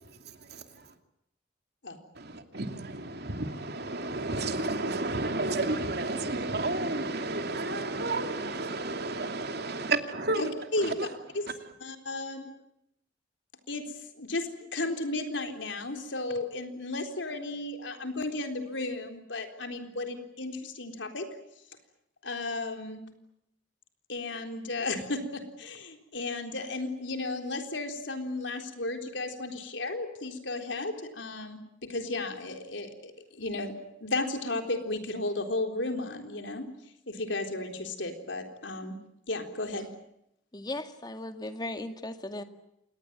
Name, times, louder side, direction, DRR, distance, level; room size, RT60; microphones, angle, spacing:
voice 1, 2.2-10.5 10.8-10.9, right 2 dB, 60° right, 2.8 m, -31 dB
voice 2, 10.4-11.0 11.3-11.5 11.8-12.5 13.7-13.9 14.2-21.3 22.2-23.0 24.1-33.7 34.0-36.7 37.1-39.0 39.3-39.9, left 2 dB, 75° left, 3.9 m, -34 dB
voice 3, 40.5-42.4, left 1 dB, 20° left, 2.0 m, -37 dB
27.0 x 20.5 x 9.1 m
head